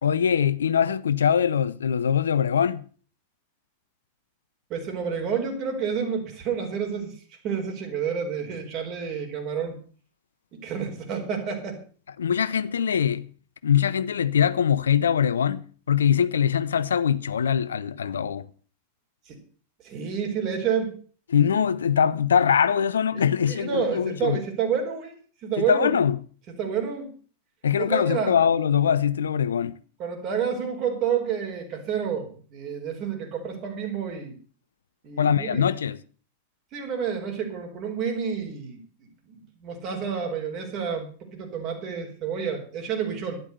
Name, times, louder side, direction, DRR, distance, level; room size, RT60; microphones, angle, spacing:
voice 1, 0.0-2.8 12.2-13.3 13.6-18.5 21.3-24.4 25.6-26.2 27.6-29.7 35.2-36.0, left 8 dB, 70° left, 0.6 m, -22 dB
voice 2, 4.7-7.2 7.4-9.8 10.5-11.8 19.3-19.4 19.8-21.0 23.1-25.1 25.4-25.9 26.5-27.1 27.8-28.4 30.0-34.4 35.0-35.7 36.7-38.8 39.3-43.4, right 7 dB, 40° right, 4.5 m, -29 dB
12.0 x 11.0 x 6.6 m
figure-of-eight pair, 90°, 0 cm